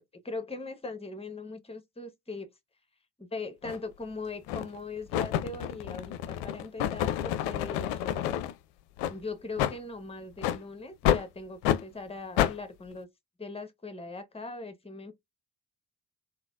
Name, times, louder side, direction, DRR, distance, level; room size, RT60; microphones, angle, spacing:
voice 1, 0.1-2.5 3.2-8.3 9.1-13.1 13.4-15.1, left 3 dB, 10° left, 0.9 m, -40 dB
sound 1, 3.6-3.8 4.5-4.8 5.1-8.5 9.0-9.1 9.6-9.8 10.4-10.6 11.0-11.2 11.6-11.8 12.4-12.5, left 12 dB, 65° left, 0.5 m, -28 dB
3.8 x 2.1 x 2.3 m
figure-of-eight pair, 40°, 47 cm